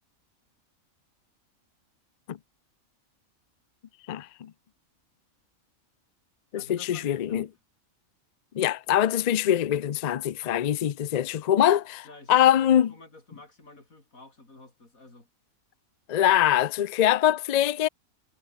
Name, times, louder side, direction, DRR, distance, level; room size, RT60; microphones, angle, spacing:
voice 1, 4.1-4.5 6.5-7.4 8.5-12.9 16.1-17.9, left 11 dB, 70° left, 0.4 m, -23 dB
voice 2, 6.5-7.6 12.0-15.3, left 2 dB, 85° left, 5.6 m, -51 dB
omnidirectional pair, 1.4 m